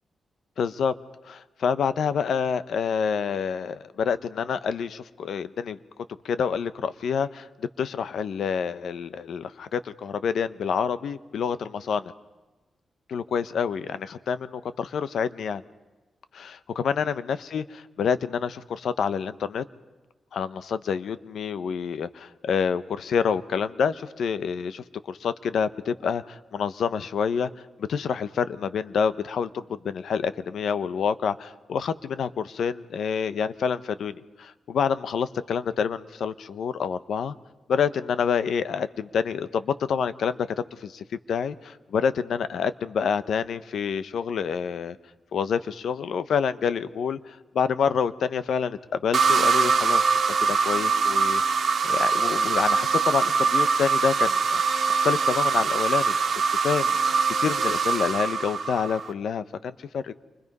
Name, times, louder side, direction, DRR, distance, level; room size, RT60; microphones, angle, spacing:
voice 1, 0.6-0.9 1.2-5.8 6.2-12.1 13.1-15.6 16.3-19.6 20.3-27.5 27.8-37.3 37.7-40.4 40.8-45.0 45.3-50.1 50.4-51.4 51.8-54.6 54.9-60.2, left 6 dB, 75° left, 13 dB, 0.9 m, -27 dB
sound 1, 49.1-59.1, right 5 dB, 60° right, 1.5 m, -23 dB
29.0 x 24.0 x 5.4 m, 1.2 s
wide cardioid pair, 165°, 0 cm